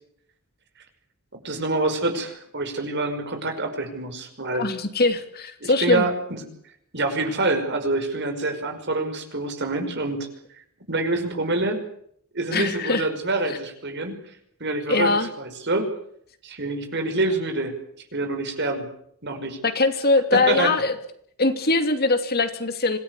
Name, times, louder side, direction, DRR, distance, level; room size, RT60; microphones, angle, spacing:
voice 1, 1.4-4.7 5.6-6.5 6.9-10.3 10.9-11.8 12.3-14.2 14.6-15.9 16.4-17.7 18.1-18.9 19.2-19.6 20.3-20.7, right 2 dB, 50° right, 6 dB, 5.6 m, -26 dB
voice 2, 4.5-6.1 12.5-13.1 13.5-13.6 14.9-15.3 19.6-20.9 21.4-23.0, left 3 dB, 45° left, 8 dB, 2.7 m, -22 dB
26.5 x 18.0 x 8.5 m, 0.68 s
head